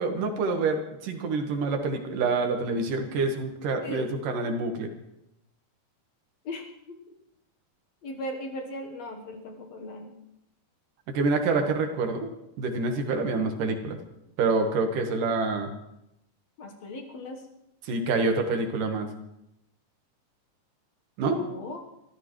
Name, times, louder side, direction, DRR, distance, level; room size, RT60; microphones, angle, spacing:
voice 1, 0.0-4.9 11.1-12.3 12.6-14.0 14.4-15.7 17.8-19.1 21.2-21.4, right 3 dB, 75° right, 5 dB, 3.1 m, -27 dB
voice 2, 6.5-7.0 8.0-10.1 16.6-17.4 21.3-21.8, left 1 dB, 60° left, 3 dB, 2.2 m, -38 dB
24.5 x 14.5 x 3.2 m, 0.84 s
omnidirectional pair, 3.8 m